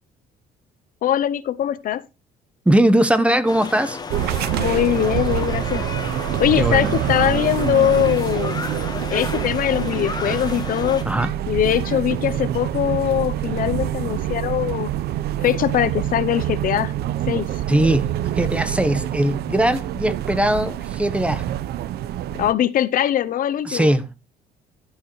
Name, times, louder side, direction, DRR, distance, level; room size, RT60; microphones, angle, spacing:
voice 1, 1.0-2.0 4.6-5.9 6.4-8.6 9.1-11.1 11.5-14.9 15.4-16.9 17.3-17.5 22.3-23.9, left 11 dB, 55° left, 0.7 m, -21 dB
voice 2, 2.7-4.0 6.6-6.9 11.1-11.3 17.7-21.5 23.7-24.1, right 1 dB, 5° right, 1.0 m, -20 dB
sound 1, 3.5-11.0, left 4 dB, 25° left, 1.4 m, -33 dB
sound 2, 4.1-22.5, right 12 dB, 70° right, 0.7 m, -26 dB
13.0 x 8.6 x 3.1 m
cardioid pair, 110°, 17 cm